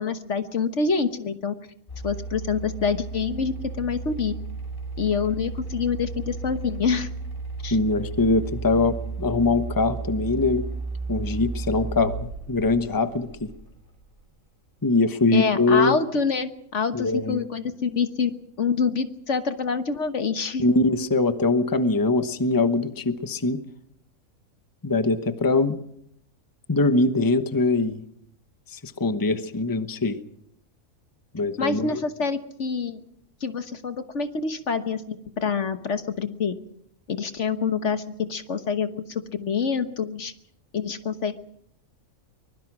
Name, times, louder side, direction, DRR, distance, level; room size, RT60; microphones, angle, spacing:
voice 1, 0.0-1.5 2.0-4.3 5.0-7.1 7.6-7.8 15.3-20.6 31.6-33.0 33.4-36.5 37.1-40.3 40.7-41.3, left 5 dB, 60° left, 9 dB, 1.5 m, -26 dB
sound 1, 1.9-14.2, right 4 dB, 40° left, 5.8 m, -34 dB
voice 2, 7.7-10.7 11.1-13.5 14.8-16.0 16.9-17.4 20.6-23.6 24.8-25.8 26.7-28.0 28.7-30.2 31.3-32.0, left 3 dB, 15° left, 10 dB, 1.0 m, -22 dB
24.0 x 21.0 x 6.1 m, 0.70 s
omnidirectional pair, 1.5 m